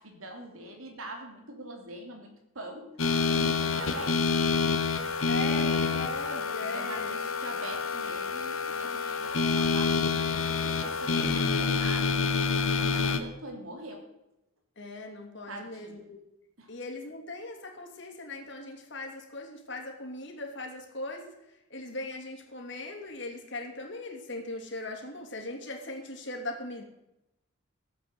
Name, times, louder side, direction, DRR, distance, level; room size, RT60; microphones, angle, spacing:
voice 1, 0.0-2.9 3.3-4.3 6.6-12.1 12.8-14.1 15.5-15.9 16.6-16.7, right 1 dB, 85° right, 3 dB, 2.9 m, -43 dB
sound 1, 3.0-13.2, left 5 dB, 80° left, 1.3 m, -28 dB
voice 2, 5.3-7.1 14.8-16.2 16.7-26.8, left 2 dB, 55° left, 2 dB, 2.7 m, -39 dB
15.0 x 8.2 x 8.0 m, 0.88 s
head